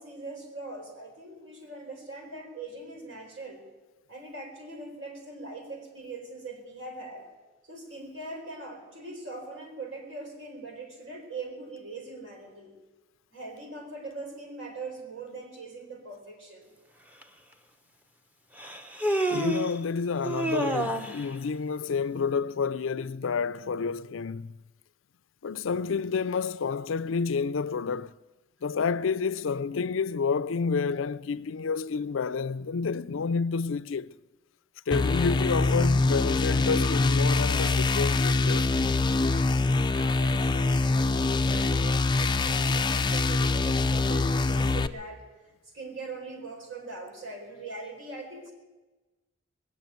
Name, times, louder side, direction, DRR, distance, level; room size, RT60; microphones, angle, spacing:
voice 1, 0.0-3.6 4.1-7.3 7.6-12.7 13.3-16.7 39.2-45.2 45.7-48.5, right 3 dB, 70° right, 4.7 m, -41 dB
Human voice, 17.2-17.3 18.6-19.8 20.2-21.2, right 1 dB, 10° right, 0.8 m, -28 dB
voice 2, 19.3-24.6 25.4-28.1 28.6-34.2 34.9-38.7, left 5 dB, 85° left, 0.5 m, -29 dB
sound 1, 34.9-44.9, left 3 dB, 25° left, 0.4 m, -24 dB
20.5 x 7.8 x 9.2 m
head